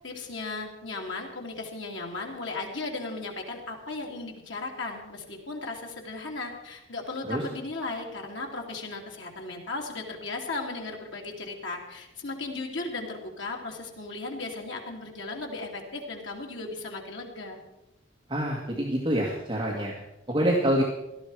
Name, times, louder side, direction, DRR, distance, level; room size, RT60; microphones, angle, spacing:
voice 1, 0.0-17.6, left 3 dB, 80° left, 1 dB, 2.8 m, -36 dB
voice 2, 18.3-20.0 20.3-20.8, equal, 25° right, -3 dB, 1.9 m, -26 dB
17.0 x 13.0 x 4.9 m, 0.91 s
head